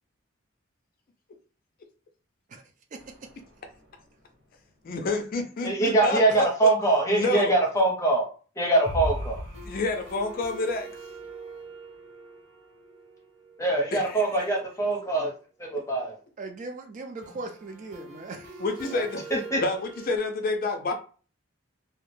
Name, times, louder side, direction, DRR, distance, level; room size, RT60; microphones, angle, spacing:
voice 1, 2.9-3.3 16.4-18.6, right 3 dB, 40° right, 0.3 m, -39 dB
sound 1, 3.0-4.2 4.5-4.6 4.9-5.0 8.8-14.5 17.2-20.2, equal, 80° right, 1.4 m, -40 dB
voice 2, 4.8-6.7 7.1-7.5 9.6-10.9 13.9-14.4 18.6-19.3 19.6-20.9, left 2 dB, 45° left, 0.4 m, -29 dB
voice 3, 5.6-8.3 8.6-9.4 13.6-15.3 15.6-16.2 19.3-19.6, right 2 dB, 15° left, 0.7 m, -23 dB
2.3 x 2.1 x 3.1 m
head